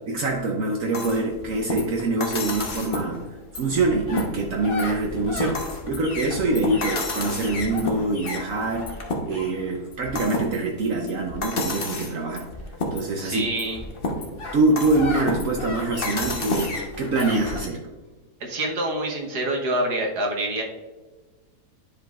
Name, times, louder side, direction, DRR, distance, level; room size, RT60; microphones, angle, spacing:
voice 1, 0.1-3.2 3.5-8.9 9.3-12.4 12.9-13.5 14.5-17.8, right 2 dB, 65° right, 1 dB, 1.1 m, -24 dB
sound 1, 0.9-17.6, left 2 dB, 40° left, 1.1 m, -31 dB
voice 2, 13.2-13.8 18.4-20.6, right 1 dB, 80° right, 0 dB, 1.7 m, -26 dB
10.0 x 5.0 x 2.4 m, 1.2 s
omnidirectional pair, 1.7 m